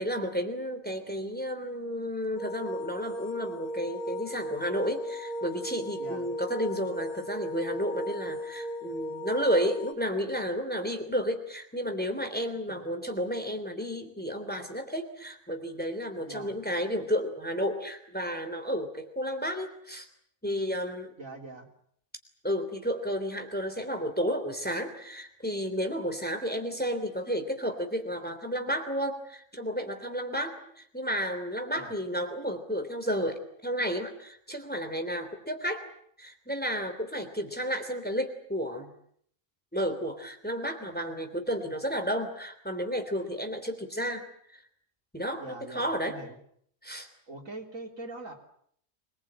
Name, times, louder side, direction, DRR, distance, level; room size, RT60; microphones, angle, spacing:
voice 1, 0.0-20.1 20.4-21.1 22.4-35.8 36.2-38.9 39.7-44.3 44.5-44.6 45.1-46.2 46.8-47.1, equal, 5° left, 5 dB, 3.1 m, -32 dB
sound 1, 2.4-9.9, equal, 30° left, 2.4 m, -36 dB
voice 2, 16.2-16.6 21.2-21.7 31.7-31.9 45.4-46.4 47.3-48.3, right 2 dB, 75° right, 2 dB, 3.9 m, -43 dB
25.5 x 20.5 x 8.8 m, 0.67 s
omnidirectional pair, 1.4 m